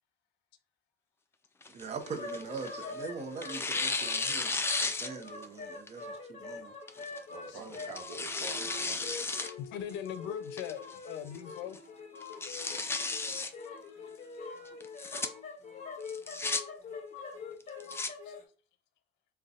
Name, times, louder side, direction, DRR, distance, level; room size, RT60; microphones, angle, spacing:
Tearing, 1.6-2.9 3.4-5.5 5.9-6.0 6.9-7.2 7.7-9.5 9.9-10.0 10.6-11.0 11.3-11.4 11.7-11.8 12.2-13.5 14.8-15.3 16.1-16.6 17.6-18.1, left 3 dB, 15° left, 0.3 m, -34 dB
voice 1, 1.7-4.5 4.8-6.7 7.5-7.9, right 5 dB, 35° right, 0.7 m, -42 dB
sound 1, 2.0-18.4, left 4 dB, 40° left, 1.0 m, -44 dB
voice 2, 7.3-9.3, right 4 dB, 80° right, 1.1 m, -47 dB
voice 3, 9.6-11.8 18.3-18.4, left 9 dB, 75° left, 0.5 m, -40 dB
3.8 x 2.3 x 2.4 m
cardioid pair, 100°, 19 cm